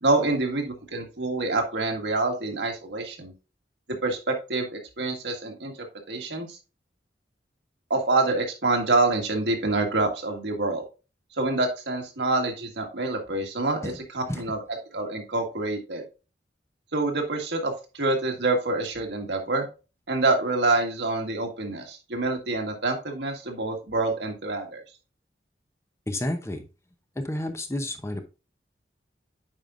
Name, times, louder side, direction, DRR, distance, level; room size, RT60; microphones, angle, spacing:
voice 1, 0.0-3.3 4.0-5.7 6.1-6.6 7.9-10.8 11.3-14.6 14.9-16.0 16.9-19.7 20.1-24.8, right 2 dB, 75° right, 3 dB, 1.7 m, -26 dB
voice 2, 26.1-26.6 27.2-28.2, left 1 dB, 15° left, 6 dB, 0.8 m, -30 dB
8.8 x 5.1 x 2.5 m, 0.31 s
head